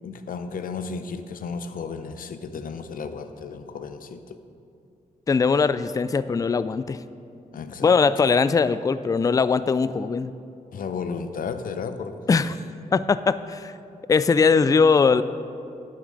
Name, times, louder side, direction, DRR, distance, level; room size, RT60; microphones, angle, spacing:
voice 1, 0.0-4.4 7.5-8.0 10.7-12.4, left 5 dB, 75° left, 10 dB, 0.6 m, -33 dB
voice 2, 5.3-7.0 7.8-10.3 12.3-12.6 12.9-13.7 14.1-15.2, left 5 dB, 25° left, 15 dB, 0.3 m, -20 dB
10.5 x 9.4 x 3.9 m, 2.5 s
cardioid pair, 70°, 15 cm